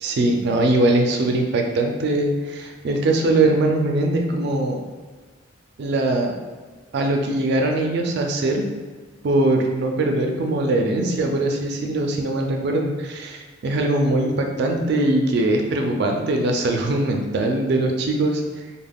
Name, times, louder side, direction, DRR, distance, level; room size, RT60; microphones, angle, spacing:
voice 1, 0.0-4.8 5.8-6.3 6.9-8.6 9.2-18.6, right 2 dB, 55° right, 2 dB, 0.3 m, -21 dB
3.4 x 2.0 x 2.2 m, 1.4 s
head